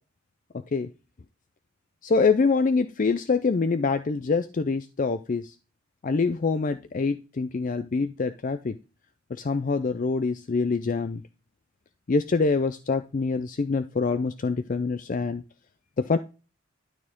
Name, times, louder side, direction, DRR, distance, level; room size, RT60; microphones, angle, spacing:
voice 1, 2.0-5.5 6.0-8.8 9.3-11.2 12.1-15.4 16.0-16.2, left 4 dB, 40° left, 11 dB, 0.4 m, -25 dB
12.0 x 4.3 x 3.6 m, 0.32 s
head